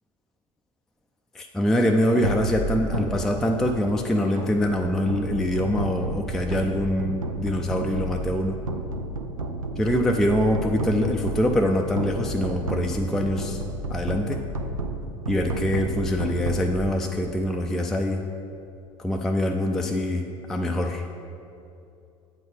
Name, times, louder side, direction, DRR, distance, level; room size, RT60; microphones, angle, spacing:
voice 1, 1.3-8.6 9.8-13.6 13.9-14.4 15.3-18.2 19.0-21.1, left 1 dB, 5° left, 2 dB, 0.4 m, -24 dB
sound 1, 2.2-17.5, right 2 dB, 90° right, 0.4 m, -31 dB
7.8 x 3.9 x 5.0 m, 2.6 s
figure-of-eight pair, 70°, 17 cm